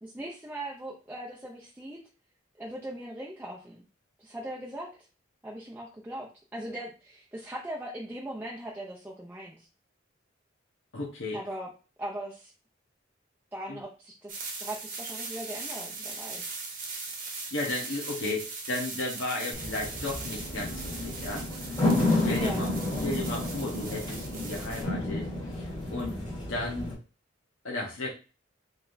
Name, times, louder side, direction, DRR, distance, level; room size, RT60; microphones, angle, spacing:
voice 1, 0.0-2.0 2.6-3.8 4.2-4.9 5.4-9.7 11.3-11.7 12.0-12.5 13.5-16.6 22.4-22.6, right 1 dB, 10° right, -3 dB, 0.6 m, -39 dB
voice 2, 10.9-11.4 13.7-13.8 17.5-22.7 23.0-25.3 25.6-26.2 26.5-26.9 27.6-28.1, left 2 dB, 85° left, -3 dB, 1.1 m, -34 dB
sound 1, 14.3-24.8, right 4 dB, 45° right, 1.1 m, -40 dB
sound 2, 19.5-26.9, left 2 dB, 25° left, 1.5 m, -31 dB
4.0 x 3.4 x 2.6 m, 0.33 s
head